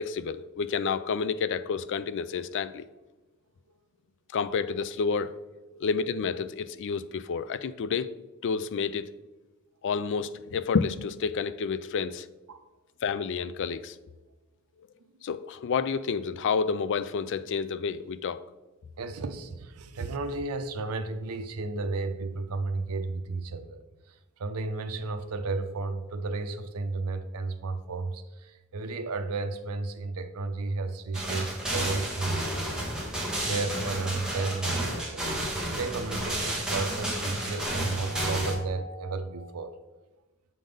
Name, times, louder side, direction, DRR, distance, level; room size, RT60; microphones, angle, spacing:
voice 1, 0.0-2.8 4.3-5.3 5.8-8.1 8.4-9.1 9.8-12.3 13.0-14.0 15.2-18.4, left 5 dB, 60° left, 13 dB, 0.4 m, -29 dB
voice 2, 19.0-23.8 24.1-32.7 33.0-35.3 35.7-39.8, right 3 dB, 90° right, 9 dB, 0.6 m, -33 dB
sound 1, 31.1-38.5, right 1 dB, 5° right, 1.4 m, -31 dB
7.5 x 3.9 x 5.2 m, 1.1 s
head